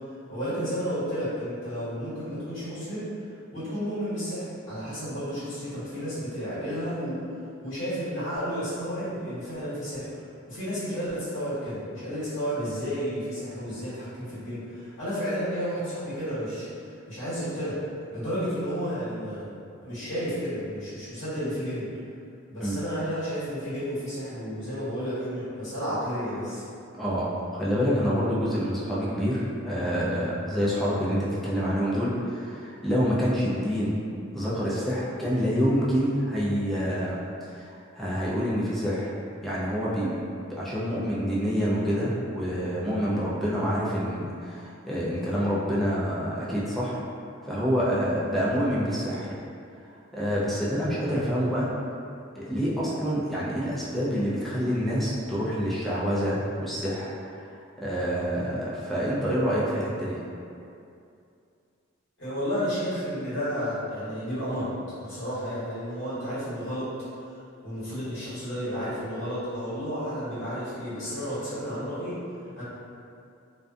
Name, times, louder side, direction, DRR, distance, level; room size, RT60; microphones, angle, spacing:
voice 1, 0.3-3.1 3.5-7.3 7.6-10.1 10.5-17.8 18.1-19.4 19.8-21.9 22.5-26.6 62.2-64.7 65.0-66.9 67.2-72.2 72.5-72.6, equal, 75° left, -13 dB, 1.3 m, -32 dB
voice 2, 26.9-34.0 34.3-37.2 37.5-39.1 39.4-40.2 40.5-47.0 47.4-49.4 49.8-51.7 52.3-57.5 57.8-60.2, equal, ahead, -8 dB, 0.4 m, -27 dB
2.5 x 2.2 x 2.4 m, 2.5 s
head